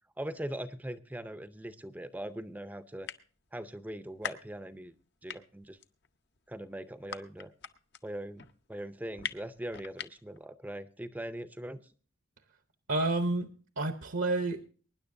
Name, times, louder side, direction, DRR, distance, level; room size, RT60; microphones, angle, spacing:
voice 1, 0.2-3.1 3.5-4.9 5.2-5.8 6.5-7.5 8.0-8.4 8.7-11.8, right 1 dB, 5° right, 11 dB, 0.5 m, -41 dB
sound 1, 1.5-1.6 2.3-2.4 2.6-2.7 2.9-3.6 3.9-5.0 5.3-10.5, left 7 dB, 50° left, 0.7 m, -41 dB
voice 2, 12.9-14.7, right 2 dB, 65° right, 8 dB, 0.8 m, -30 dB
23.5 x 10.0 x 2.6 m, 0.41 s
head